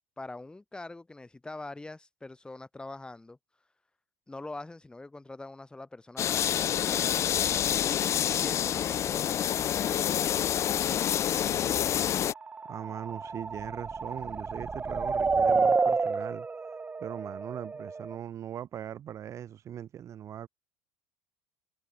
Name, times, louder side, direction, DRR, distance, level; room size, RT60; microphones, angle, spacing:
voice 1, 0.0-3.4 4.3-10.1, left 2 dB, 10° left, 5.9 m, -44 dB
sound 1, 6.2-12.3, left 10 dB, 40° left, 0.6 m, -27 dB
voice 2, 11.4-11.9 12.7-16.5 17.0-20.5, right 10 dB, 40° right, 2.1 m, -40 dB
sound 2, 12.4-18.2, right 4 dB, 20° right, 1.8 m, -30 dB
hypercardioid pair, 70°, 8 cm